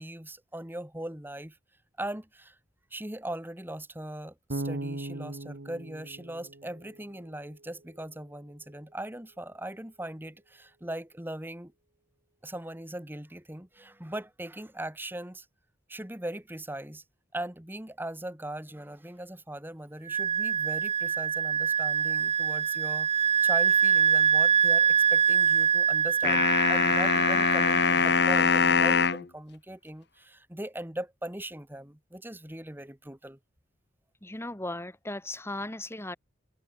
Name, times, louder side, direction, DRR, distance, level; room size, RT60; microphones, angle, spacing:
voice 1, 0.0-1.6 2.0-2.6 2.9-11.7 12.4-15.5 15.9-17.0 17.3-33.4, right 1 dB, 10° right, 2.3 m, -40 dB
Bass guitar, 4.5-7.5, right 2 dB, 65° right, 1.5 m, -38 dB
Wind instrument woodwind instrument, 20.1-28.4, right 7 dB, 35° right, 0.7 m, -25 dB
sound 1, 26.2-29.2, left 5 dB, 60° left, 1.8 m, -23 dB
voice 2, 34.2-36.2, left 1 dB, 15° left, 2.8 m, -37 dB
head